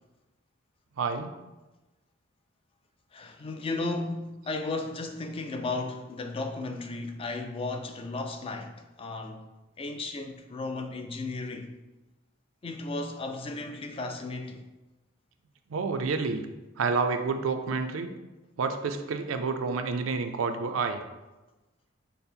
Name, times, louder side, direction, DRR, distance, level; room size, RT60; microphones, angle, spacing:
voice 1, 1.0-1.3 15.7-16.4 16.8-18.1 18.6-21.0, right 4 dB, 75° right, 0.4 m, -29 dB
voice 2, 3.1-9.4 9.8-11.7 12.6-14.6, left 3 dB, 25° left, 0.3 m, -34 dB
5.2 x 2.0 x 4.3 m
head